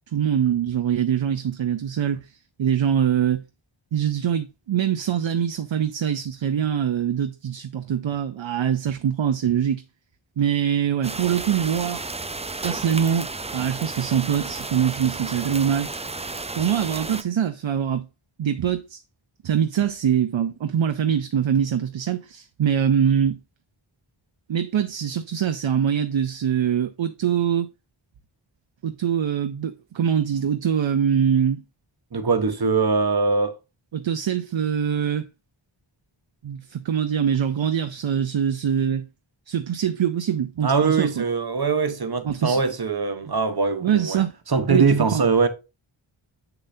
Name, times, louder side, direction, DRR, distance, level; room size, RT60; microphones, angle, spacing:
voice 1, 0.1-3.4 3.9-9.8 10.4-12.0 12.6-15.9 16.3-18.1 18.4-19.0 19.4-23.4 24.5-27.7 28.8-31.6 33.9-35.3 36.4-39.1 39.5-41.3 42.2-42.6 43.8-44.3 44.7-45.2, right 8 dB, 65° right, 0.6 m, -23 dB
sound 1, 11.0-17.2, right 3 dB, 15° right, 0.4 m, -33 dB
voice 2, 32.1-33.5 40.6-44.2 44.5-45.5, right 4 dB, 50° right, 1.1 m, -22 dB
7.0 x 6.8 x 2.7 m
wide cardioid pair, 55°, 49 cm